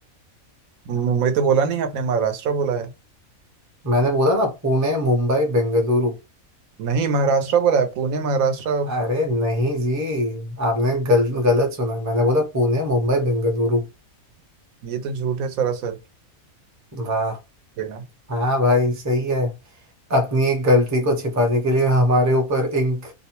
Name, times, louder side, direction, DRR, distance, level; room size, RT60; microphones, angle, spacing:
voice 1, 0.9-2.9 6.8-8.9 14.8-16.0 17.8-18.0, right 5 dB, 85° right, 1.1 m, -22 dB
voice 2, 3.8-6.1 8.9-13.9 16.9-17.4 18.3-19.5 20.1-23.1, left 1 dB, 20° right, 0.5 m, -20 dB
2.6 x 2.1 x 2.9 m
omnidirectional pair, 1.4 m